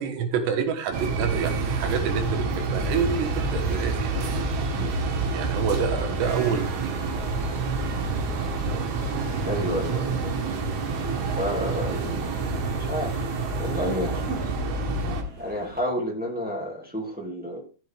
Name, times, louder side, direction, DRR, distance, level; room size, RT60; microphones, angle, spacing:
voice 1, 0.0-4.1 5.3-7.0, right 6 dB, 90° right, 5 dB, 3.8 m, -28 dB
sound 1, 0.9-15.2, right 3 dB, 70° right, 3.7 m, -28 dB
sound 2, 1.6-15.8, right 2 dB, 30° right, 2.2 m, -43 dB
voice 2, 9.4-10.1 11.4-12.5 12.7-13.2 13.6-14.5 15.4-17.6, equal, 5° right, -2 dB, 1.7 m, -30 dB
13.5 x 7.5 x 3.7 m, 0.35 s
omnidirectional pair, 4.8 m